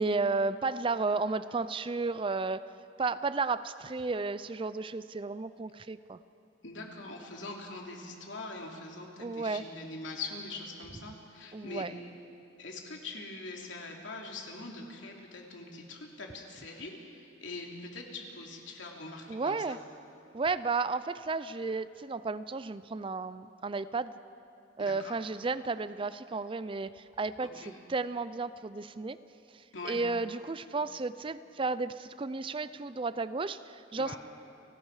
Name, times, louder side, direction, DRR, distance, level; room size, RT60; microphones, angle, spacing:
voice 1, 0.0-2.6 3.0-6.2 9.2-9.6 11.5-11.9 19.3-19.8 20.3-24.1 24.8-29.2 29.8-34.2, right 3 dB, 30° right, 14 dB, 0.5 m, -33 dB
voice 2, 6.6-11.8 12.6-19.8 24.8-25.2 27.6-27.7 29.7-30.0 34.0-34.2, left 3 dB, 85° left, 0 dB, 3.1 m, -43 dB
30.0 x 18.5 x 4.9 m, 3.0 s
head